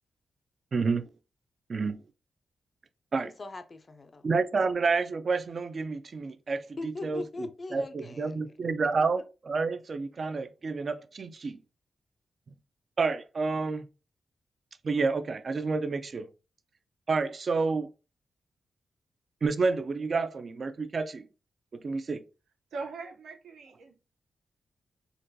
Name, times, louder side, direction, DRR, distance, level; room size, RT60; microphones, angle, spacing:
voice 1, 0.7-1.1 1.7-2.0 3.1-3.3 4.2-6.6 7.0-7.2 7.7-11.6 13.0-13.9 14.8-16.3 17.1-17.9 19.4-21.3 21.8-22.2, right 4 dB, 45° right, 0.3 m, -29 dB
voice 2, 3.2-4.3 6.8-8.6, left 2 dB, 35° left, 0.4 m, -40 dB
voice 3, 22.7-24.0, right 4 dB, 85° right, 0.6 m, -40 dB
3.7 x 2.2 x 2.6 m
wide cardioid pair, 115°, 0 cm